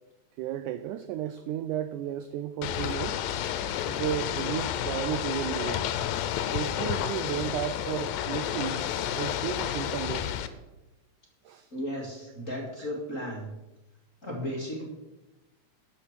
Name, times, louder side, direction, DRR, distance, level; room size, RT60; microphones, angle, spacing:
voice 1, 0.4-3.2 3.9-5.8 6.3-8.8 9.2-10.3 11.5-11.7 12.8-12.9, right 11 dB, 85° right, 11 dB, 1.8 m, -33 dB
Ocean / Boat Water vehicle, 2.6-10.5, left 10 dB, 85° left, 2.5 m, -31 dB
voice 2, 11.7-13.5 14.2-14.8, equal, 30° left, -2 dB, 1.8 m, -35 dB
12.5 x 6.3 x 7.3 m, 1.0 s
omnidirectional pair, 4.1 m